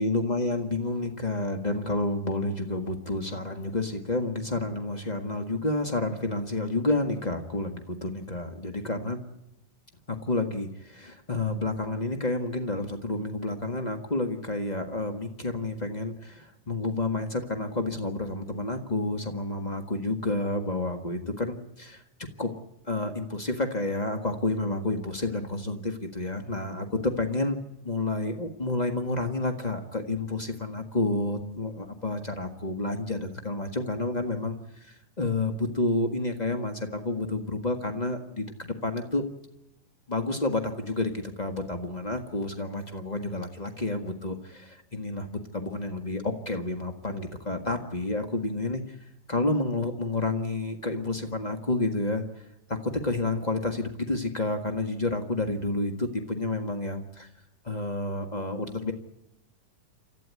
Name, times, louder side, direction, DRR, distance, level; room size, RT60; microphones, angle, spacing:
voice 1, 0.0-9.2 10.1-22.0 22.4-22.5 22.9-27.6 27.8-34.6 34.8-39.2 40.1-45.3 45.5-48.8 49.3-52.4 52.7-57.3 57.6-58.9, left 2 dB, 35° left, 5 dB, 0.6 m, -30 dB
29.0 x 13.5 x 9.5 m, 0.85 s
omnidirectional pair, 3.8 m